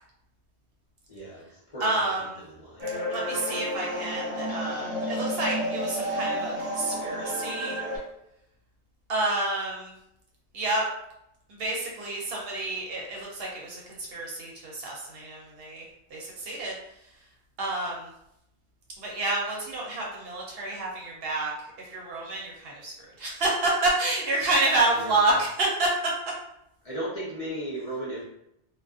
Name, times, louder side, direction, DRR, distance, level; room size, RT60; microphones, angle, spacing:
voice 1, 1.1-2.1 2.4-2.9 25.0-25.4 26.8-28.2, right 1 dB, 40° left, -8 dB, 0.7 m, -36 dB
voice 2, 1.8-2.2 3.1-7.8 9.1-9.9 10.5-10.8 11.5-15.8 16.1-16.7 17.6-18.1 19.0-21.5 21.9-22.9 23.2-26.1, right 2 dB, 65° right, -2 dB, 0.8 m, -28 dB
sound 1, 2.8-8.0, equal, 35° right, 0.9 m, -31 dB
2.4 x 2.2 x 2.3 m, 0.80 s
omnidirectional pair, 1.2 m